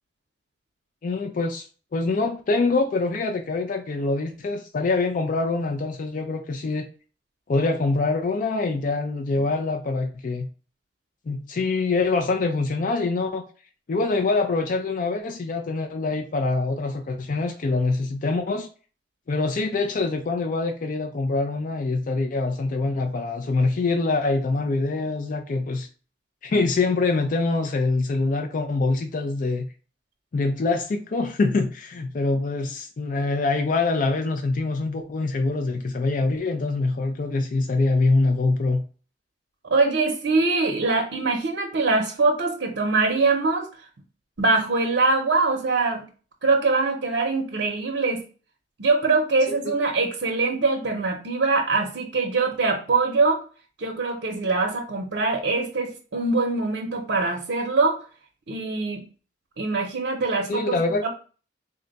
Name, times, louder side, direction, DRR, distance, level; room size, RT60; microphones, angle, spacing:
voice 1, 1.0-1.7 1.9-6.9 7.5-10.5 11.3-13.4 13.9-18.7 19.3-25.9 26.4-29.7 30.3-38.8 49.5-49.6 60.5-61.1, left 3 dB, 50° left, 0.4 m, -24 dB
voice 2, 39.6-43.7 44.4-46.0 46.4-48.2 48.8-53.4 53.8-58.0 58.5-59.0 59.6-61.1, right 3 dB, 80° right, 0.7 m, -23 dB
3.7 x 2.2 x 3.8 m
head